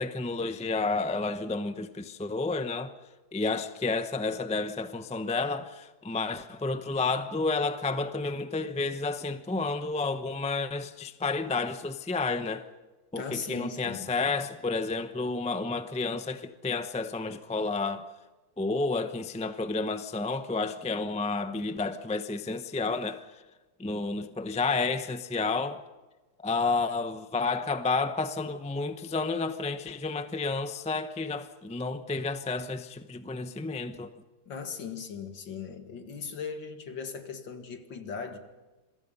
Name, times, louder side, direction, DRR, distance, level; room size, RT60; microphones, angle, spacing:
voice 1, 0.0-2.9 3.3-12.7 13.1-18.1 18.6-23.4 23.8-25.8 26.4-34.1, left 3 dB, 10° left, 0.3 m, -31 dB
voice 2, 13.2-14.1 34.5-38.4, left 6 dB, 70° left, 2.6 m, -38 dB
27.0 x 23.0 x 5.5 m
omnidirectional pair, 2.1 m